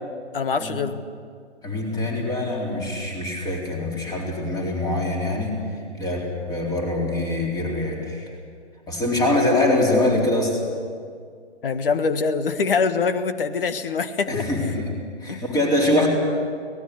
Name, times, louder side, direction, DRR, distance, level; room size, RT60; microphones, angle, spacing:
voice 1, 0.3-1.0 11.6-14.5 15.3-15.4, left 5 dB, 50° left, 10 dB, 1.6 m, -24 dB
voice 2, 1.6-5.6 6.0-8.3 8.9-10.6 14.3-14.9 15.2-16.1, left 1 dB, 10° left, -1 dB, 4.0 m, -23 dB
25.0 x 18.5 x 8.3 m, 2.1 s
figure-of-eight pair, 140°, 36 cm